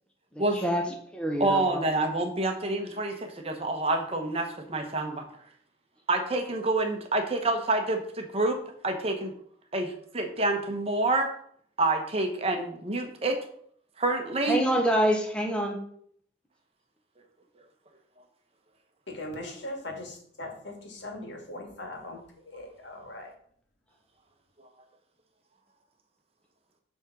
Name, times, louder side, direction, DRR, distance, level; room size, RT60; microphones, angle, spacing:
voice 1, 0.5-0.8 1.1-1.9 14.5-15.8, equal, 5° left, 1 dB, 1.0 m, -26 dB
voice 2, 1.4-5.2 6.1-8.6 8.8-9.3 9.7-11.3 11.8-13.4 14.0-14.6, right 2 dB, 30° right, 4 dB, 1.0 m, -27 dB
voice 3, 19.1-22.2 22.5-23.3, left 1 dB, 75° left, 2 dB, 2.0 m, -40 dB
7.9 x 3.7 x 6.1 m, 0.62 s
head